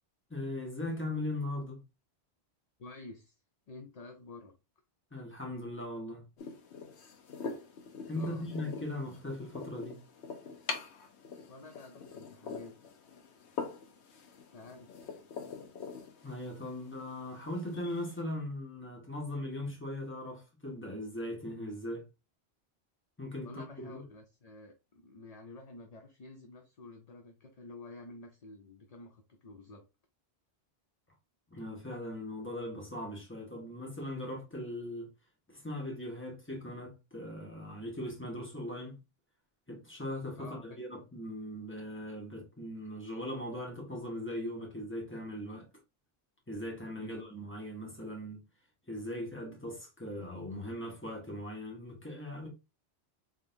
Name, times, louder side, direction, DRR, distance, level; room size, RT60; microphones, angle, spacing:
voice 1, 0.3-1.8 5.1-6.2 8.1-10.0 16.2-22.0 23.2-24.0 31.5-35.1 35.5-39.0 39.7-45.7 46.5-48.4 48.9-52.5, left 1 dB, 10° left, 1.3 m, -39 dB
voice 2, 2.8-3.4 3.7-4.5 8.1-8.6 11.5-12.8 14.5-14.9 23.4-29.8 40.4-40.8 47.0-47.3, left 3 dB, 45° left, 0.6 m, -50 dB
sound 1, 6.4-18.2, left 5 dB, 85° left, 1.0 m, -44 dB
3.7 x 3.6 x 2.7 m
omnidirectional pair, 1.1 m